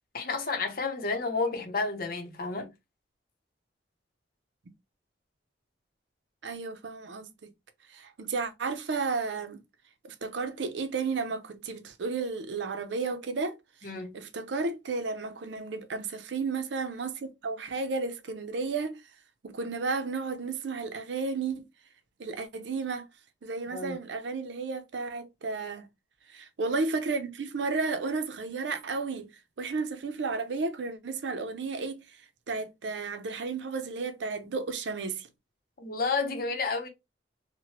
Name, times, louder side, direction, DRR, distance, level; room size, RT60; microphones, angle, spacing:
voice 1, 0.1-2.7 13.8-14.2 23.7-24.0 35.8-36.9, left 4 dB, 55° left, 0.7 m, -31 dB
voice 2, 6.4-7.5 7.9-9.6 10.0-18.9 19.4-21.6 22.2-23.1 23.4-25.9 26.3-29.3 29.6-32.0 32.5-35.3, right 4 dB, 80° right, 0.5 m, -33 dB
3.0 x 2.1 x 2.9 m
head